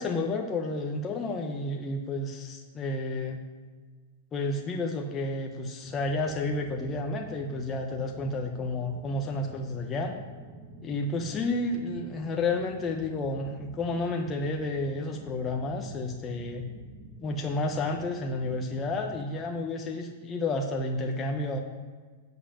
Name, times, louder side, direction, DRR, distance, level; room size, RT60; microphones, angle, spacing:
voice 1, 0.0-3.4 4.3-10.1 10.8-16.7 17.2-21.6, left 2 dB, 15° left, 2 dB, 0.8 m, -31 dB
sound 1, 5.8-19.3, right 2 dB, 25° right, 1.2 m, -48 dB
8.1 x 7.4 x 8.6 m, 1.5 s
supercardioid pair, 165°, 0 cm